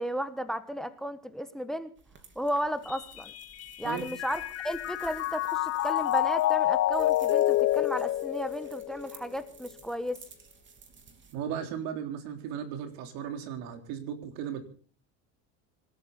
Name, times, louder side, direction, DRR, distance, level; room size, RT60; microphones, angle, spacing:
voice 1, 0.0-1.9 2.3-3.3 3.8-10.2, equal, ahead, 12 dB, 1.2 m, -34 dB
sound 1, 2.0-11.3, right 5 dB, 30° right, 3.1 m, -55 dB
Mallet percussion, 2.9-9.3, left 14 dB, 40° left, 0.7 m, -28 dB
voice 2, 11.3-14.6, right 8 dB, 70° right, 6 dB, 3.6 m, -36 dB
26.0 x 12.5 x 4.0 m, 0.42 s
supercardioid pair, 115°, 37 cm